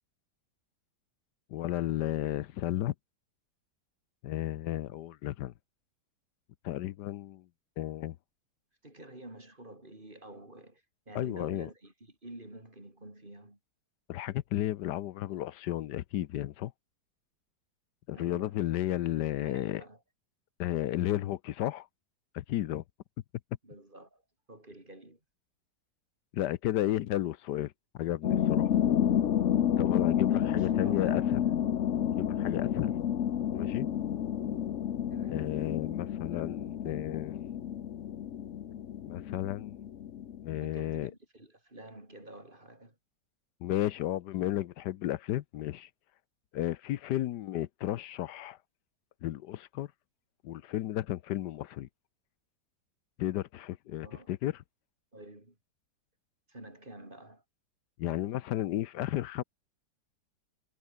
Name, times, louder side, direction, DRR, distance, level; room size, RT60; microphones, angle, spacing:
voice 1, 1.5-2.9 4.2-5.5 6.6-7.4 7.8-8.2 11.1-11.7 14.1-16.7 18.1-19.8 20.6-21.9 22.3-22.8 26.3-28.7 29.8-31.4 32.1-33.0 33.5-33.9 35.3-37.5 39.0-39.8 40.4-41.1 43.6-45.9 46.5-48.6 49.2-49.9 50.4-51.9 53.2-54.6 58.0-59.4, left 13 dB, 80° left, 1.3 m, -33 dB
voice 2, 8.8-13.6 18.1-18.6 19.4-20.0 23.6-24.2 24.5-25.2 26.9-27.2 29.6-29.9 30.3-31.4 35.1-35.5 40.6-43.0 53.9-54.3 55.1-55.6 56.5-57.4, right 1 dB, 25° right, 6.7 m, -49 dB
sound 1, 28.2-40.6, left 9 dB, 55° left, 1.0 m, -30 dB
omnidirectional pair, 1.9 m